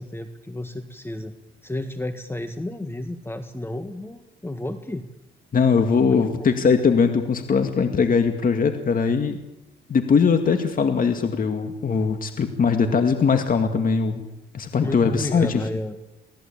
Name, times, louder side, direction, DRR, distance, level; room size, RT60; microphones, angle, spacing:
voice 1, 0.0-1.3 1.6-5.0 6.0-6.7 14.8-16.0, left 1 dB, 10° left, 8 dB, 1.7 m, -32 dB
voice 2, 5.5-9.4 9.9-14.3 14.5-15.6, left 5 dB, 45° left, 6 dB, 2.2 m, -20 dB
24.5 x 18.0 x 8.7 m, 0.94 s
cardioid pair, 90°, 20 cm